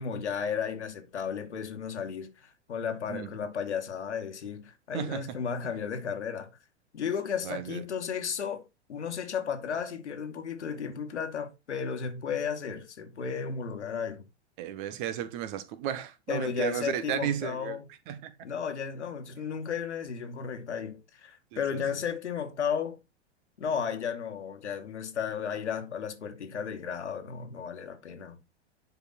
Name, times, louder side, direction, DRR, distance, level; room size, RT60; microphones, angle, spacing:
voice 1, 0.0-6.5 6.9-14.3 16.3-17.9 18.4-23.0 23.6-28.4, left 7 dB, 75° left, 2.3 m, -34 dB
voice 2, 7.4-7.8 14.6-17.8 18.1-18.3 21.5-21.8, right 10 dB, 45° right, 1.6 m, -34 dB
10.5 x 5.1 x 4.3 m
figure-of-eight pair, 100°, 35 cm